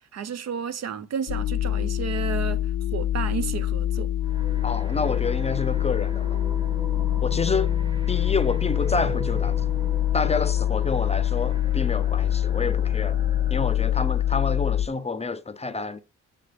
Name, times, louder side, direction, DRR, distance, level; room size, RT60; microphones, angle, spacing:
voice 1, 0.1-2.6 2.9-4.1, right 7 dB, 60° right, 0.9 m, -32 dB
sound 1, 1.3-14.9, left 12 dB, 60° left, 0.5 m, -25 dB
sound 2, 4.2-14.8, right 2 dB, 15° right, 1.2 m, -40 dB
voice 2, 4.6-6.4 7.2-7.7 8.1-9.6 10.1-13.2 13.5-16.0, left 4 dB, 20° left, 0.7 m, -28 dB
8.1 x 3.6 x 5.1 m
cardioid pair, 90°, 30 cm